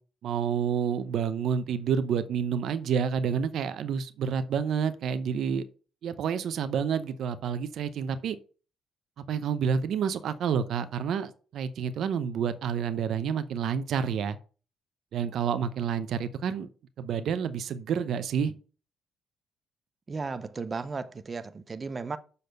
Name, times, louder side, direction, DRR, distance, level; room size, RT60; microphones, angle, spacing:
voice 1, 0.2-5.6 6.0-8.4 9.3-14.4 15.1-16.7 17.0-18.5, right 7 dB, 70° right, 0.7 m, -29 dB
voice 2, 20.1-22.2, right 4 dB, 35° right, 0.7 m, -35 dB
6.8 x 4.2 x 6.6 m
cardioid pair, 90°, 0 cm